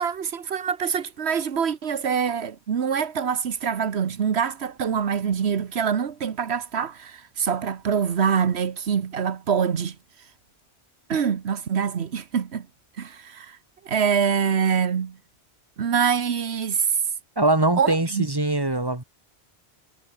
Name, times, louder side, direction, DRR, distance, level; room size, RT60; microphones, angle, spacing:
voice 1, 0.0-10.0 11.1-12.7 13.0-13.6 13.8-15.2 15.8-17.0 17.7-18.3, right 7 dB, 80° right, 1.4 m, -25 dB
voice 2, 17.4-19.0, right 2 dB, 20° right, 2.2 m, -22 dB
omnidirectional pair, 1.1 m